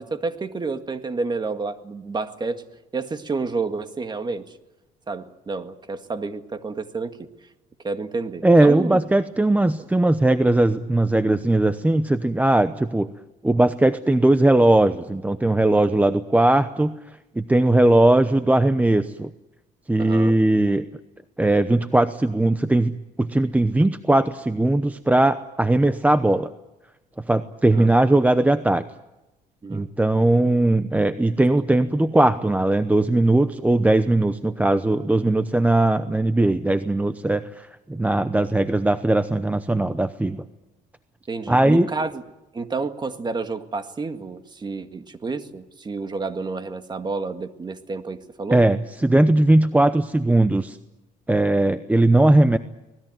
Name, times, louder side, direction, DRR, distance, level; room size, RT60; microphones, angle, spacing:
voice 1, 0.0-2.6 2.9-4.6 5.1-7.3 7.8-9.0 20.0-20.4 27.7-27.9 29.6-29.9 41.3-42.2 42.5-48.6, right 4 dB, 25° right, 9 dB, 1.9 m, -30 dB
voice 2, 8.4-13.1 13.4-17.0 17.3-19.3 19.9-20.9 21.4-22.9 23.2-26.5 27.3-28.8 29.7-40.4 41.5-41.9 48.5-50.8 51.3-52.6, right 2 dB, 10° right, 12 dB, 0.8 m, -19 dB
25.0 x 19.5 x 9.3 m, 1.0 s
cardioid pair, 110°, 17 cm